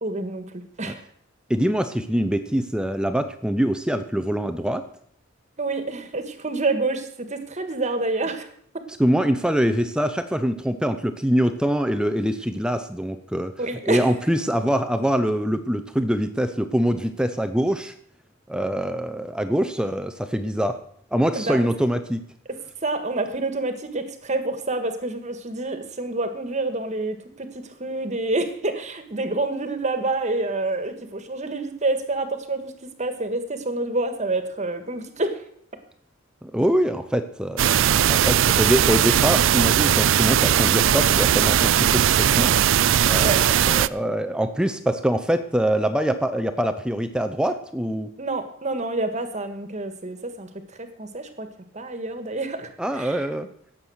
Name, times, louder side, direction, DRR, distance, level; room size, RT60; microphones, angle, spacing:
voice 1, 0.0-1.0 5.6-8.5 8.7-8.8 13.6-14.1 21.4-21.7 22.8-32.7 33.0-35.4 43.2-43.4 48.2-51.5 51.7-53.3, right 2 dB, 35° right, 8 dB, 1.6 m, -28 dB
voice 2, 1.5-4.8 9.0-13.5 13.9-17.9 18.5-20.8 21.1-22.2 36.4-42.5 43.1-48.1 52.8-53.5, equal, 5° right, 9 dB, 0.6 m, -24 dB
sound 1, 37.6-43.9, right 10 dB, 65° right, 0.4 m, -19 dB
17.5 x 7.5 x 6.4 m, 0.66 s
head